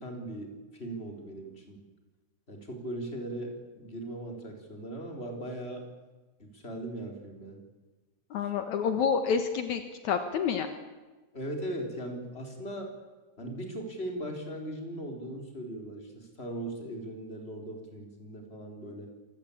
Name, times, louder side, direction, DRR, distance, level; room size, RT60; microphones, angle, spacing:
voice 1, 0.0-1.8 2.5-5.9 6.4-7.6 11.3-13.0 13.4-19.1, right 1 dB, 20° left, 3 dB, 4.2 m, -39 dB
voice 2, 8.3-10.7, left 6 dB, 70° left, 8 dB, 2.6 m, -28 dB
27.0 x 17.5 x 8.6 m, 1.2 s
omnidirectional pair, 3.5 m